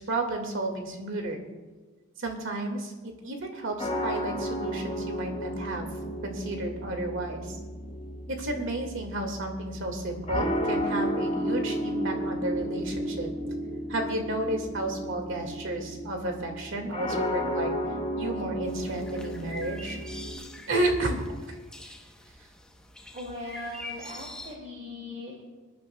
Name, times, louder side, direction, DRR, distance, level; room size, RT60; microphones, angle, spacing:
voice 1, 0.0-1.4 2.2-5.9 6.2-7.6 8.3-13.3 13.9-17.7 18.2-20.0 20.7-21.2, right 1 dB, 65° right, 3 dB, 2.1 m, -32 dB
sound 1, 3.8-20.4, equal, 30° left, 3.3 m, -33 dB
sound 2, 18.7-24.5, left 1 dB, 5° left, 1.0 m, -44 dB
voice 2, 23.1-25.3, left 1 dB, 40° right, -3 dB, 2.4 m, -39 dB
25.5 x 10.5 x 2.3 m, 1.4 s
head